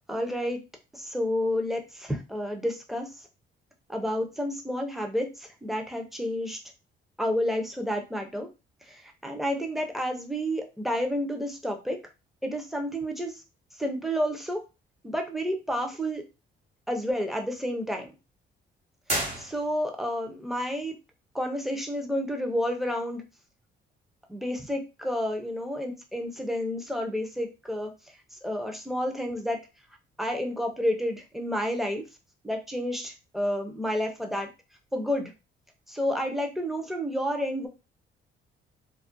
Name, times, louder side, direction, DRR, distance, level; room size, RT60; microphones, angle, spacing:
voice 1, 0.1-0.6 0.9-3.1 3.9-6.6 7.2-8.5 8.9-12.0 12.4-13.3 13.8-14.6 15.0-16.2 16.9-18.1 19.4-21.0 21.3-23.2 24.3-27.9 28.4-29.6 30.2-32.1 32.4-34.5 34.9-35.3 35.9-37.7, equal, ahead, 3 dB, 0.5 m, -30 dB
sound 1, 19.0-20.1, right 1 dB, 35° right, 1.3 m, -32 dB
2.4 x 2.1 x 2.5 m, 0.28 s
cardioid pair, 90°, 20 cm